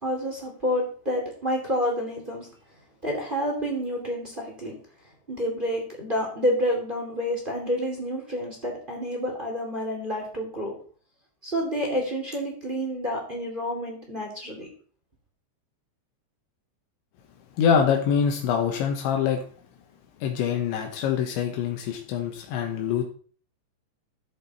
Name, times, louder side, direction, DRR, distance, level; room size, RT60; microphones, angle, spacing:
voice 1, 0.0-2.5 3.0-4.7 5.3-10.7 11.4-14.7, equal, 15° right, -1 dB, 2.0 m, -29 dB
voice 2, 17.6-19.4 20.2-23.0, left 7 dB, 80° left, 2 dB, 3.5 m, -24 dB
13.0 x 7.4 x 4.3 m, 0.44 s
omnidirectional pair, 5.3 m